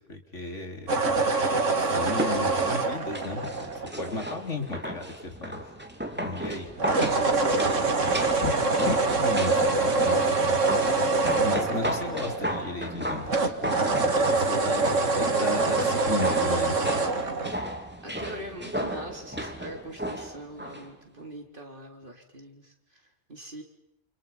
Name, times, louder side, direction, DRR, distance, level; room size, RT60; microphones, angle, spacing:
voice 1, 0.1-1.0 1.9-3.7 4.0-5.6 6.1-7.0 8.4-8.6 8.8-10.6 11.0-13.4 14.1-14.9 15.2-16.9, left 3 dB, 80° left, 4 dB, 4.1 m, -34 dB
sound 1, 0.9-4.3 6.8-12.9 13.3-17.5, right 3 dB, 90° right, 2.5 m, -25 dB
sound 2, 2.1-20.9 21.2-21.3, equal, 10° right, 3.0 m, -34 dB
voice 2, 7.5-8.1 14.5-14.8 18.0-23.0 23.3-23.6, right 1 dB, 45° right, 3 dB, 4.0 m, -42 dB
29.5 x 29.0 x 5.9 m, 0.79 s
omnidirectional pair, 1.2 m